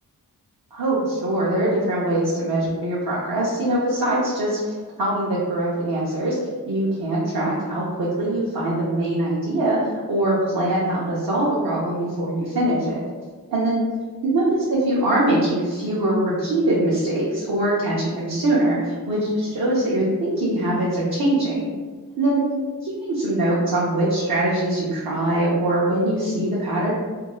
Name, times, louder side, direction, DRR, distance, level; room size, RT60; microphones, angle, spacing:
voice 1, 0.7-6.4 6.7-9.8 10.1-13.0 13.5-13.8 14.2-21.7 22.2-22.4 22.8-26.9, right 1 dB, 65° right, -7 dB, 0.8 m, -22 dB
2.7 x 2.3 x 3.0 m, 1.5 s
cardioid pair, 50°, 38 cm